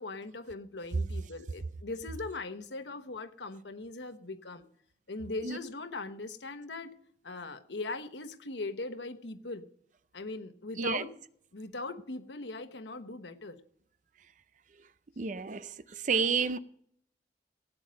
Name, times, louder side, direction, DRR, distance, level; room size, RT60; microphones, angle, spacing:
voice 1, 0.0-4.7 5.1-6.9 7.2-9.6 10.1-11.1 11.5-13.6, left 3 dB, 85° left, 1.1 m, -40 dB
voice 2, 15.2-16.6, right 5 dB, 45° right, 0.5 m, -30 dB
17.0 x 9.0 x 5.2 m
head